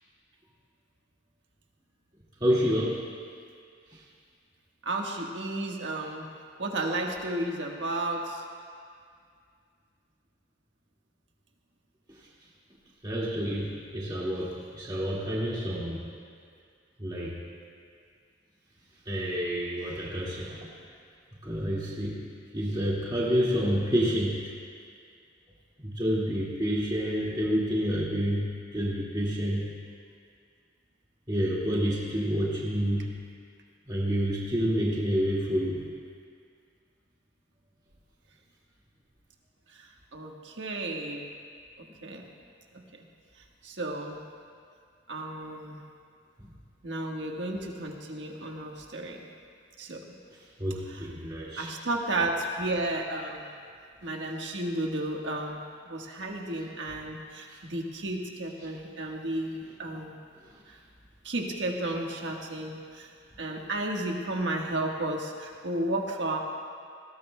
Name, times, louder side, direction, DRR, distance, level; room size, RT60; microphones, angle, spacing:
voice 1, 2.4-3.0 13.0-16.1 17.0-17.4 19.1-20.6 21.4-22.1 22.5-24.4 25.8-29.7 31.3-33.1 33.9-35.8 50.6-51.7 57.5-57.6, equal, 25° right, -6 dB, 1.9 m, -28 dB
voice 2, 4.8-6.3 6.6-8.4 39.8-41.3 42.0-42.3 43.6-44.2 45.1-45.8 46.8-49.3 49.8-50.0 50.8-51.1 51.6-53.5 54.0-60.2 61.2-63.1 63.4-66.4, right 2 dB, 70° right, 1 dB, 1.4 m, -33 dB
20.0 x 17.0 x 2.2 m, 2.2 s
head